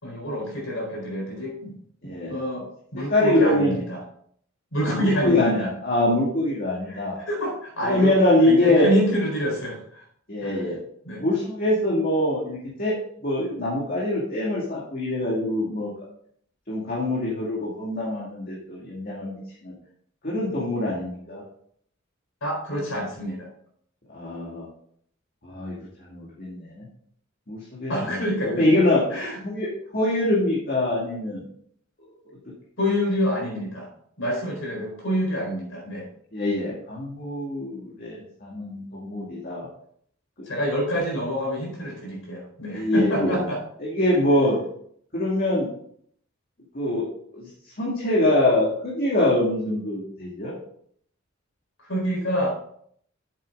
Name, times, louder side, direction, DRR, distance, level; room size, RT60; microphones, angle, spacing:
voice 1, 0.0-1.8 2.0-2.7 2.9-4.0 4.7-5.7 6.9-8.1 8.4-10.0 10.4-10.6 11.0-11.2 22.4-23.5 27.9-28.7 29.1-29.4 32.8-33.9 34.2-36.1 40.5-43.6 51.8-52.5, equal, 80° left, -1 dB, 4.2 m, -27 dB
voice 2, 2.0-2.4 3.1-3.8 4.9-7.2 7.8-8.9 10.3-10.8 11.2-13.0 13.2-15.9 16.7-19.7 20.2-21.4 24.1-24.7 25.4-25.8 26.1-26.9 27.5-28.2 28.5-29.0 29.4-31.4 32.3-32.4 36.3-39.7 42.7-43.4 43.8-44.6 45.1-45.7 46.7-47.1 47.3-47.5 47.8-50.6, left 1 dB, 45° left, -5 dB, 2.2 m, -24 dB
8.6 x 7.6 x 3.7 m, 0.65 s
head